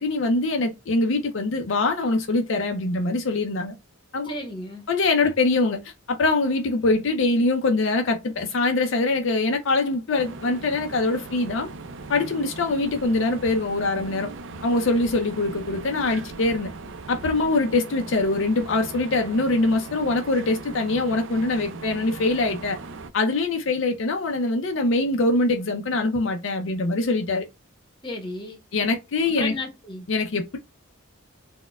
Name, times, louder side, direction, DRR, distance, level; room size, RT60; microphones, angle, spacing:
voice 1, 0.0-3.7 4.1-4.3 4.9-11.7 12.1-14.3 14.6-16.7 17.1-22.8 23.1-27.4 28.7-29.5 30.1-30.6, left 2 dB, 65° left, 0.5 m, -23 dB
voice 2, 4.2-4.8 28.0-28.6 29.4-30.1, left 1 dB, 25° left, 0.9 m, -33 dB
sound 1, 10.1-23.1, right 3 dB, 65° right, 0.4 m, -39 dB
4.1 x 2.2 x 2.2 m
head